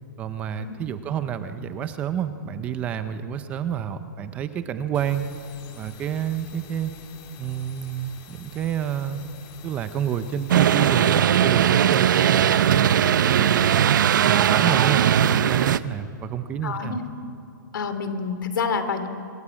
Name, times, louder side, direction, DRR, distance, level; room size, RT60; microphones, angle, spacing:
voice 1, 0.2-5.3 5.8-6.9 7.4-9.2 9.6-13.0 13.3-17.0, right 9 dB, 15° right, 11 dB, 0.5 m, -29 dB
sound 1, 4.9-15.8, left 7 dB, 25° left, 2.0 m, -48 dB
sound 2, 10.5-15.8, right 9 dB, 70° right, 0.6 m, -19 dB
voice 2, 16.6-17.0 17.7-19.1, left 5 dB, 80° left, 9 dB, 2.5 m, -28 dB
25.5 x 17.0 x 8.7 m, 2.5 s
hypercardioid pair, 175°, 11 cm